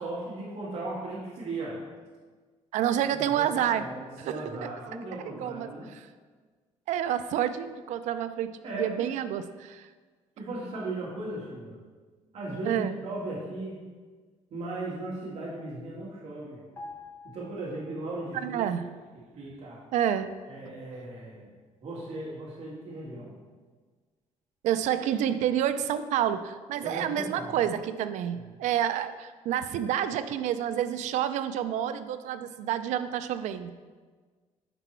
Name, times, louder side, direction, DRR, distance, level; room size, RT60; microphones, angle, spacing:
voice 1, 0.0-1.8 3.0-5.9 8.6-9.1 10.4-11.8 12.3-13.8 14.5-16.6 17.2-18.7 19.1-19.8 20.4-21.5 21.8-23.4 26.8-27.6 28.3-28.4 29.7-29.8, right 2 dB, 55° right, -5 dB, 1.9 m, -37 dB
voice 2, 2.7-3.9 4.3-4.4 5.2-5.7 6.9-9.9 12.7-12.9 18.4-18.8 19.9-20.3 20.7-20.8 24.6-33.7, right 10 dB, 80° right, 12 dB, 0.4 m, -29 dB
sound 1, 16.8-18.4 18.7-18.9, left 2 dB, 20° left, 0.9 m, -47 dB
6.0 x 4.5 x 4.4 m, 1.5 s
cardioid pair, 165°, 12 cm